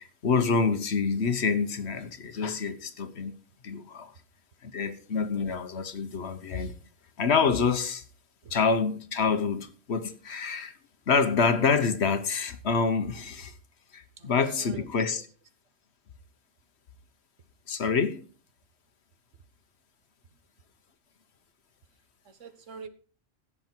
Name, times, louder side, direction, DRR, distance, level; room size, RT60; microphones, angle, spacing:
voice 1, 0.0-3.3 3.6-4.1 4.6-6.7 7.2-8.0 8.5-10.7 11.1-13.5 13.9-15.2 17.7-18.2, left 5 dB, 60° left, 1.3 m, -27 dB
voice 2, 14.2-14.9 22.2-22.9, right 5 dB, 75° right, 1.5 m, -44 dB
16.0 x 7.0 x 4.5 m
omnidirectional pair, 1.3 m